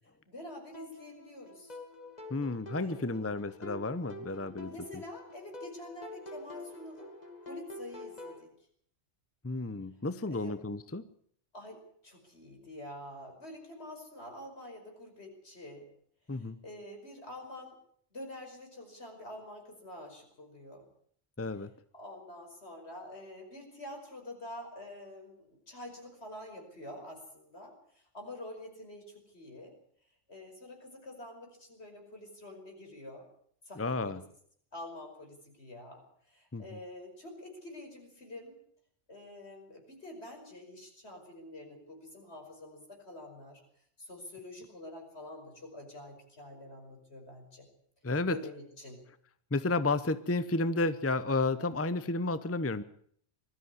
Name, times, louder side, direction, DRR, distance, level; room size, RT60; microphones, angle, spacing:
voice 1, 0.3-1.8 2.8-3.4 4.6-7.1 7.4-8.5 10.3-10.6 11.5-15.9 16.3-17.8 18.1-20.9 21.9-29.7 30.3-33.2 33.6-34.2 34.7-38.6 39.1-43.6 44.0-47.7 48.2-49.0, left 1 dB, 70° left, 2 dB, 5.7 m, -47 dB
sound 1, 0.7-8.4, left 2 dB, 40° left, 2.9 m, -47 dB
voice 2, 2.3-5.0 9.4-11.0 16.3-16.6 21.4-21.7 33.8-34.2 36.5-36.6 48.0-48.4 49.5-52.8, left 2 dB, 15° left, 13 dB, 0.8 m, -32 dB
20.5 x 13.0 x 9.6 m, 0.63 s
omnidirectional pair, 1.1 m